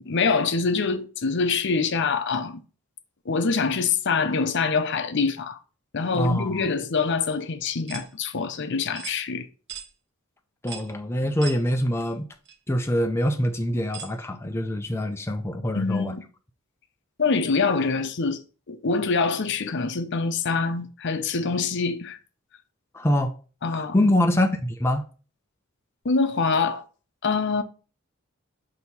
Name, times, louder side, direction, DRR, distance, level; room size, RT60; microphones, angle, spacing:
voice 1, 0.0-2.6 3.3-5.6 5.9-9.5 15.7-16.2 17.2-18.4 18.7-22.2 23.6-24.1 26.0-26.8 27.2-27.6, left 4 dB, 55° left, 0.6 m, -25 dB
voice 2, 6.1-6.7 10.6-12.3 12.7-16.1 22.9-23.3 23.7-25.1, left 1 dB, 10° left, 0.4 m, -24 dB
sound 1, 7.9-8.1 9.0-9.2 9.7-9.9 10.7-10.9 11.4-11.6 12.5-12.6 13.9-14.2, right 7 dB, 55° right, 0.9 m, -38 dB
6.2 x 2.8 x 5.4 m
head